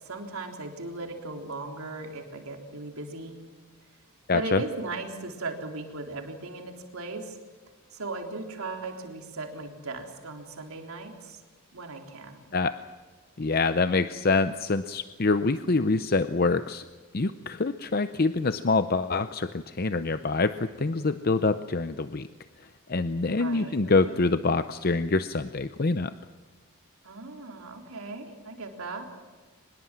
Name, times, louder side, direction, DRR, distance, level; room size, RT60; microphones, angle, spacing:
voice 1, 0.0-3.4 4.3-7.4 7.9-11.4 11.7-12.4 23.2-24.2 27.0-29.1, right 3 dB, 80° right, 3 dB, 3.7 m, -37 dB
voice 2, 4.3-4.6 12.5-12.8 13.4-16.8 17.1-22.3 22.9-26.1, left 3 dB, 45° left, 11 dB, 0.6 m, -25 dB
23.5 x 21.0 x 7.5 m, 1.4 s
head